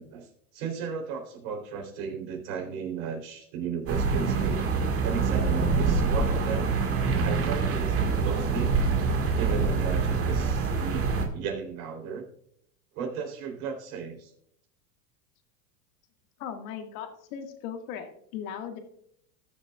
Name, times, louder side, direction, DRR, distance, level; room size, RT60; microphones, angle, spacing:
voice 1, 0.0-4.8 5.0-6.7 7.2-8.8 9.3-11.1 11.3-12.2 12.9-14.3, right 6 dB, 60° right, 2 dB, 3.7 m, -35 dB
sound 1, 3.9-11.3, right 4 dB, 30° right, 1.8 m, -25 dB
voice 2, 16.4-18.8, left 8 dB, 60° left, 5 dB, 2.0 m, -38 dB
20.0 x 6.8 x 2.4 m, 0.69 s
supercardioid pair, 130°, 46 cm